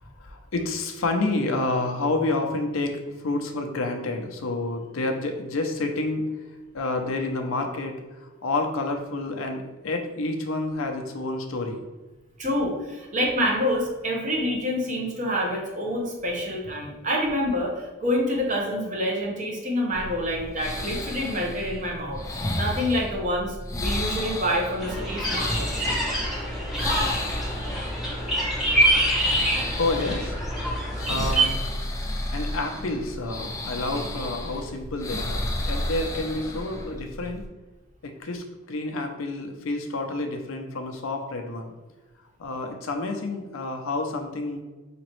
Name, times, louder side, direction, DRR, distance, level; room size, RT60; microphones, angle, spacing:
voice 1, 0.2-6.3 6.7-7.9 8.2-11.9 29.8-30.3 31.1-31.6 32.3-37.4 38.0-41.7 42.4-44.6, left 2 dB, 75° left, 4 dB, 0.6 m, -29 dB
voice 2, 12.4-22.2 22.5-25.7, equal, 35° right, -1 dB, 0.9 m, -27 dB
sound 1, 19.9-37.5, left 1 dB, 15° left, 0.4 m, -32 dB
sound 2, 24.8-31.5, right 1 dB, ahead, 1.1 m, -25 dB
4.9 x 2.9 x 3.1 m, 1.2 s
head